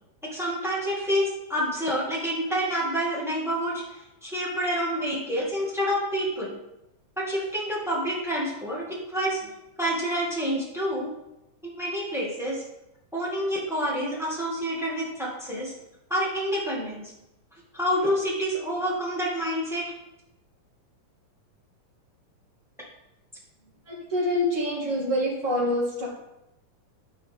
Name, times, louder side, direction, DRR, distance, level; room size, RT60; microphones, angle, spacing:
voice 1, 0.3-6.5 7.2-9.5 9.8-11.1 11.6-12.6 13.1-15.7 16.1-17.1 17.7-19.9, equal, ahead, -5 dB, 1.0 m, -28 dB
voice 2, 23.9-26.1, left 1 dB, 25° right, -6 dB, 2.4 m, -26 dB
12.0 x 4.6 x 3.5 m, 0.89 s
omnidirectional pair, 3.8 m